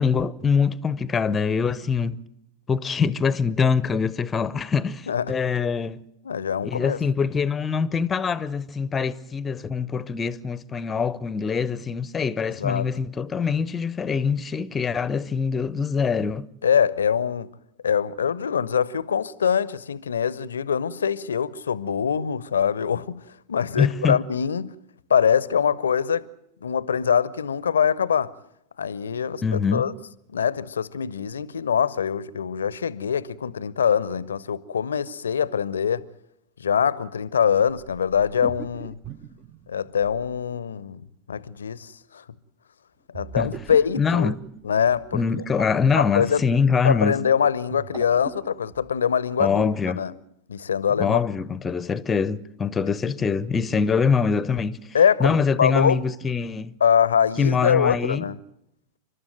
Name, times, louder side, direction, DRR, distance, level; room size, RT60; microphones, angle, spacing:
voice 1, 0.0-2.2 2.7-6.0 6.6-16.5 23.8-24.2 29.4-29.8 43.3-43.5 44.0-44.4 45.1-47.2 49.4-50.0 51.0-54.8 55.2-56.7 57.4-58.3, left 5 dB, 20° left, 0.8 m, -24 dB
voice 2, 6.2-7.0 12.6-12.9 16.6-17.5 17.8-23.2 23.5-24.7 25.1-26.3 26.6-28.4 28.8-29.9 30.3-36.0 36.6-39.0 39.7-42.2 43.1-44.3 44.6-45.2 45.9-46.4 46.8-50.1 50.5-51.2 54.9-56.0 56.8-58.4, left 7 dB, 70° left, 0.8 m, -23 dB
sound 1, 37.8-40.5 43.1-45.2 47.5-49.0, right 6 dB, 30° right, 0.9 m, -41 dB
30.0 x 12.5 x 9.1 m
figure-of-eight pair, 90°, 0 cm